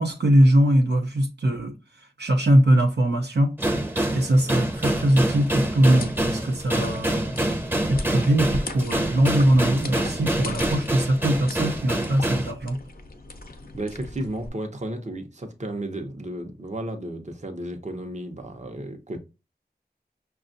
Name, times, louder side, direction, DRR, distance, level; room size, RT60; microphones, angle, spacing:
voice 1, 0.0-1.7 2.2-3.5 4.1-7.4 7.9-12.8, right 1 dB, 90° right, 0.7 m, -21 dB
sound 1, 3.6-12.5, right 1 dB, 15° right, 0.7 m, -26 dB
sound 2, 4.7-14.5, left 2 dB, 60° left, 0.6 m, -39 dB
voice 2, 13.7-19.2, right 1 dB, 45° right, 0.8 m, -33 dB
5.5 x 2.3 x 2.5 m
wide cardioid pair, 45°, 17 cm